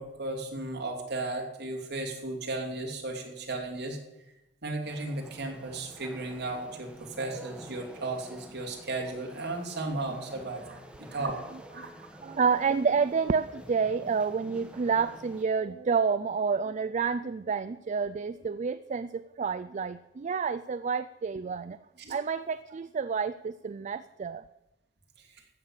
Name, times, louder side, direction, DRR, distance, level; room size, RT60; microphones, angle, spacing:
voice 1, 0.0-4.0 4.6-11.4 11.7-12.1 22.0-22.2 25.2-25.3, right 2 dB, 60° right, 2 dB, 2.8 m, -35 dB
sound 1, 4.8-15.4, equal, 5° right, 1.2 m, -49 dB
voice 2, 12.2-21.8 22.1-24.4, right 5 dB, 40° right, 13 dB, 0.4 m, -29 dB
14.5 x 6.5 x 8.7 m, 0.95 s
head